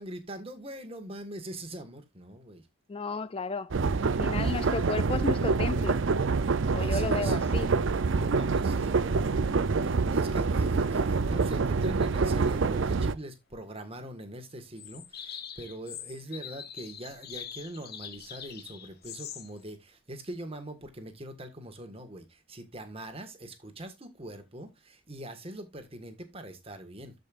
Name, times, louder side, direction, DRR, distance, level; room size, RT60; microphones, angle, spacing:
voice 1, 0.0-2.6 3.7-4.0 6.8-7.4 8.2-27.1, right 1 dB, 30° right, 1.6 m, -42 dB
voice 2, 2.9-3.7 4.0-6.0 6.7-7.7, left 4 dB, 25° left, 0.3 m, -33 dB
sound 1, 3.7-13.1, right 4 dB, 65° right, 0.5 m, -26 dB
sound 2, 14.5-14.6 14.8-19.6, left 9 dB, 50° left, 1.0 m, -43 dB
13.0 x 5.3 x 2.5 m
head